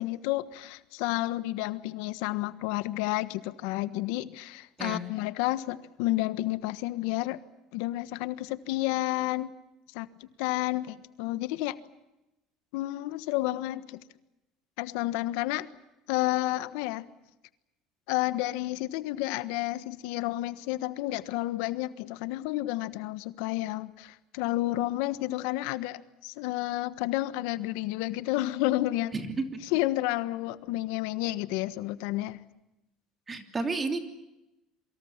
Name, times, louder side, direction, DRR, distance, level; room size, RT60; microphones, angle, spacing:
voice 1, 0.0-7.4 7.7-9.6 9.9-10.1 10.4-11.8 12.7-14.0 14.8-15.7 16.1-17.0 18.1-29.1 29.7-32.4, left 17 dB, 85° left, 1.3 m, -30 dB
voice 2, 29.1-29.4 33.3-34.0, right 3 dB, 20° right, 3.0 m, -31 dB
27.5 x 24.5 x 7.4 m
cardioid pair, 150°, 0 cm